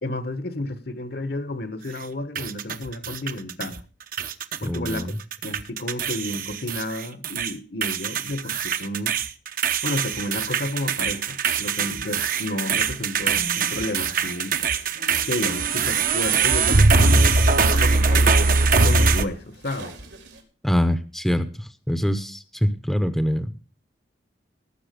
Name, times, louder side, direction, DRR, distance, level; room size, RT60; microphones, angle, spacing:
voice 1, 0.0-3.8 4.6-5.1 5.4-9.2 9.8-14.6 15.3-19.9, left 1 dB, 55° left, 1.2 m, -31 dB
sound 1, 2.4-3.8 4.1-5.0 5.3-7.5 7.8-19.3, right 4 dB, 50° right, 0.9 m, -22 dB
voice 2, 4.7-5.2 20.6-23.5, equal, ahead, 0.8 m, -24 dB
sound 2, 10.1-11.5 11.7-17.0, left 1 dB, 75° left, 2.4 m, -44 dB
sound 3, 13.1-20.4, right 6 dB, 80° right, 3.7 m, -44 dB
18.0 x 7.4 x 5.1 m
head